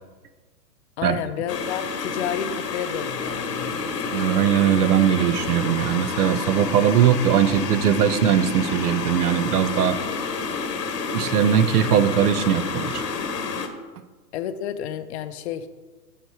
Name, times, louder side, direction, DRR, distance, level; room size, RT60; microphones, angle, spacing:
voice 1, 1.0-4.3 11.2-11.5 14.3-15.7, left 9 dB, 45° left, 10 dB, 0.5 m, -31 dB
sound 1, 1.5-13.7, left 4 dB, 75° left, 1.0 m, -29 dB
voice 2, 4.1-10.0 11.1-13.0, right 9 dB, 65° right, 13 dB, 0.7 m, -20 dB
7.7 x 4.9 x 4.6 m, 1.3 s
figure-of-eight pair, 110°, 49 cm